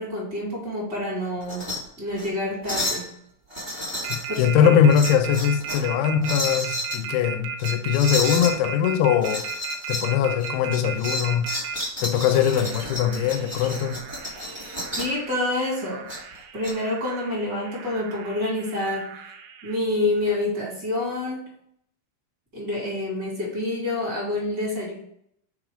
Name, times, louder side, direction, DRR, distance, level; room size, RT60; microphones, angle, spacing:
voice 1, 0.0-1.7 2.0-3.0 4.3-4.7 15.0-16.1 16.5-19.3 19.6-21.5 22.5-24.9, left 2 dB, 30° right, 2.8 m, -27 dB
sound 1, 1.4-1.8 2.1-2.3 2.6-3.1 3.5-4.5 4.9-5.9 6.2-7.0 7.6-8.5 9.2-10.1 10.4-15.2 16.1-16.7, left 1 dB, 5° right, 1.6 m, -31 dB
sound 2, 4.0-11.8 12.3-19.8, right 7 dB, 90° right, 2.7 m, -36 dB
voice 2, 4.1-9.5 9.9-11.5 12.0-14.0, left 8 dB, 80° left, 2.5 m, -21 dB
6.1 x 3.8 x 4.9 m
omnidirectional pair, 4.5 m